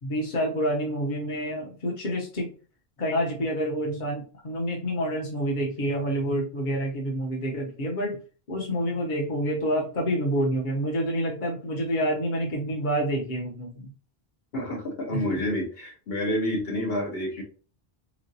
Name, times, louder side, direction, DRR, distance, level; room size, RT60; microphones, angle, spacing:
voice 1, 0.0-2.5 3.0-8.2 8.5-13.9 15.1-15.2, equal, 50° left, -1 dB, 1.0 m, -28 dB
voice 2, 14.5-17.4, left 1 dB, 70° left, 1 dB, 1.2 m, -29 dB
3.7 x 3.1 x 2.6 m, 0.38 s
omnidirectional pair, 1.0 m